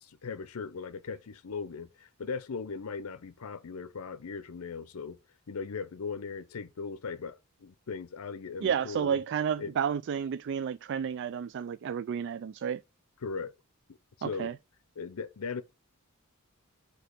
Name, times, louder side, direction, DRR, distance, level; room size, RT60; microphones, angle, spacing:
voice 1, 0.0-5.2 5.5-9.2 9.6-9.7 13.2-13.5 14.2-14.5 15.0-15.6, left 5 dB, 80° left, 0.6 m, -38 dB
voice 2, 8.6-12.8 14.2-14.6, right 7 dB, 55° right, 0.3 m, -31 dB
8.1 x 2.9 x 5.8 m
head